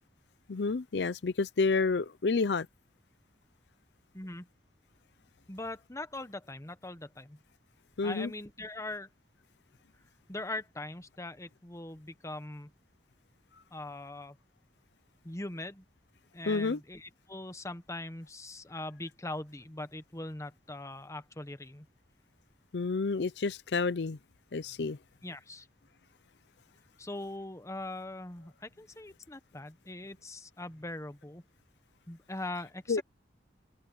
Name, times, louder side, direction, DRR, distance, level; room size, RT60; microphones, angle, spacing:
voice 1, 0.5-2.7 8.0-8.3 16.5-16.8 22.7-24.2 24.5-25.0 32.9-33.0, left 4 dB, 70° left, 0.6 m, -29 dB
voice 2, 4.1-4.5 5.5-7.4 8.0-9.1 10.3-12.7 13.7-14.4 15.2-15.8 16.3-21.9 25.2-25.7 27.0-31.4 32.1-33.0, left 2 dB, 20° left, 1.2 m, -41 dB
open air
head